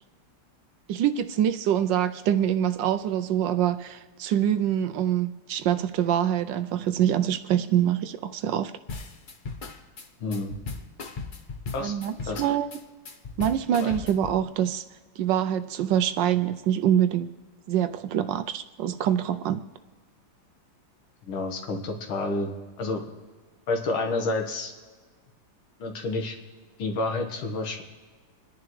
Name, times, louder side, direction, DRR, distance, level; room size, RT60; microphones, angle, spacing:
voice 1, 0.9-8.7 11.8-12.7 13.4-14.8 15.2-17.3 17.7-19.6, right 10 dB, 75° right, 11 dB, 1.1 m, -25 dB
sound 1, 8.9-14.4, left 4 dB, 60° left, 0.5 m, -37 dB
voice 2, 10.2-10.6 11.7-11.9 12.2-12.4 13.8-13.9 21.2-22.5 22.8-23.0 23.7-24.7 25.8-26.4 26.8-27.8, left 2 dB, 85° left, 3 dB, 2.2 m, -29 dB
28.0 x 10.5 x 3.2 m, 1.4 s
omnidirectional pair, 2.2 m